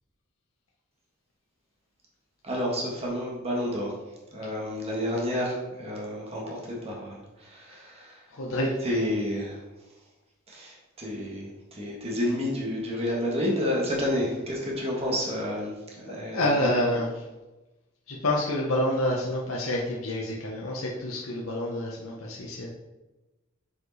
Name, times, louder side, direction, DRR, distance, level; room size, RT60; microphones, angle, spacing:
voice 1, 2.4-3.9 4.3-8.3 8.8-9.6 10.5-17.0, left 1 dB, 30° right, -2 dB, 1.5 m, -30 dB
voice 2, 8.3-8.7 16.0-17.1 18.1-22.7, left 1 dB, 75° left, -3 dB, 1.0 m, -28 dB
7.3 x 4.9 x 4.1 m, 1.1 s
head